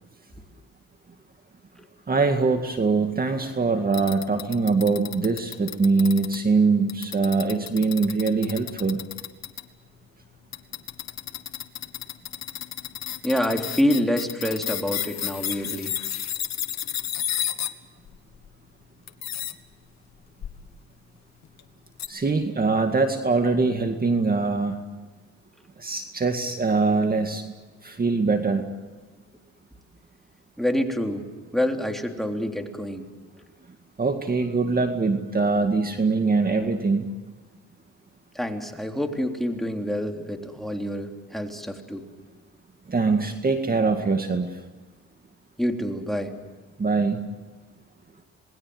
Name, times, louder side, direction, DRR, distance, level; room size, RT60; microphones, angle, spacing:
voice 1, 2.1-9.0 22.1-24.8 25.8-27.5 27.8-28.7 34.0-37.1 42.9-44.5 46.8-47.2, right 4 dB, 30° right, 5 dB, 2.1 m, -23 dB
sound 1, 3.9-6.4 6.9-9.6 10.5-17.7 18.1-18.5 19.1-19.5 20.4-20.6 21.4-21.6 22.0-22.1, left 10 dB, 60° left, 1.7 m, -32 dB
voice 2, 13.2-15.9 30.6-31.2 31.5-33.1 33.3-33.4 38.3-42.0 45.6-46.3, equal, ahead, 3 dB, 3.4 m, -27 dB
27.5 x 20.5 x 7.9 m, 1.3 s
cardioid pair, 90°, 30 cm